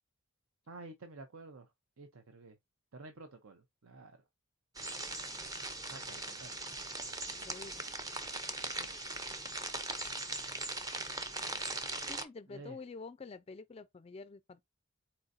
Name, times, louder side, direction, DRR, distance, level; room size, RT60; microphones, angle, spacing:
voice 1, 0.7-1.7 2.0-2.6 2.9-4.2 5.8-6.5 8.6-8.9 12.5-12.8, right 3 dB, 70° right, 0.7 m, -51 dB
sound 1, 4.7-12.2, right 2 dB, 15° right, 0.6 m, -40 dB
voice 2, 7.4-7.8 12.1-14.6, left 4 dB, 25° left, 0.3 m, -48 dB
4.3 x 3.9 x 2.5 m
head